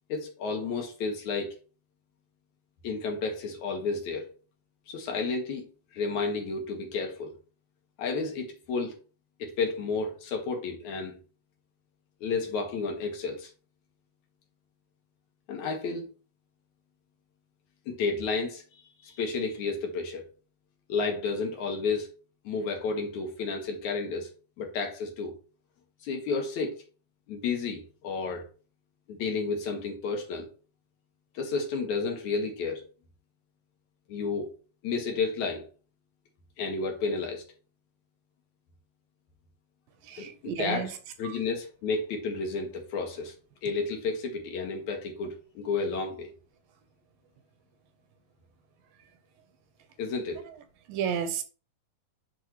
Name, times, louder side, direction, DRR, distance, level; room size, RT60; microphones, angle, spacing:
voice 1, 0.1-1.5 2.8-4.3 4.9-5.7 5.9-7.3 8.0-9.0 9.4-11.2 12.2-13.5 15.5-16.1 17.9-20.3 20.9-22.1 22.4-24.3 24.6-25.4 26.0-26.8 27.3-28.4 29.1-30.5 31.3-32.8 34.1-34.5 34.8-35.7 36.6-37.4 40.2-40.9 41.2-43.3 43.6-46.3 50.0-50.4, left 4 dB, 65° left, 2.6 m, -31 dB
voice 2, 40.0-40.9 41.2-41.3 50.9-51.4, right 8 dB, 80° right, 2.5 m, -31 dB
10.0 x 3.5 x 3.0 m
omnidirectional pair, 3.9 m